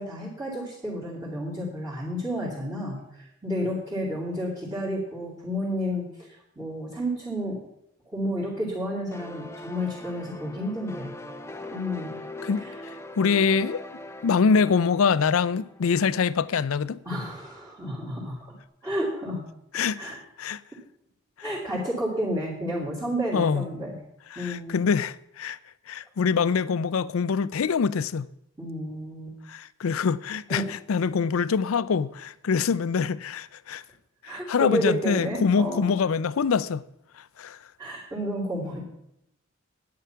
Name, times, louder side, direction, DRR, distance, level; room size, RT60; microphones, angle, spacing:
voice 1, 0.0-7.6 8.1-11.1 11.7-12.2 12.6-12.8 17.0-18.4 18.8-19.4 19.9-20.2 21.4-23.9 24.4-24.9 28.6-29.3 30.5-30.6 34.2-36.0 37.8-38.8, equal, 15° right, 2.6 m, -31 dB
sound 1, 9.1-16.6, left 1 dB, 15° left, 0.6 m, -41 dB
voice 2, 13.2-13.8 14.2-17.0 19.7-20.6 23.3-23.7 24.3-25.6 25.9-28.3 29.5-33.8 34.2-36.8 37.4-37.6, left 5 dB, 85° left, 0.4 m, -24 dB
10.5 x 8.7 x 5.7 m
head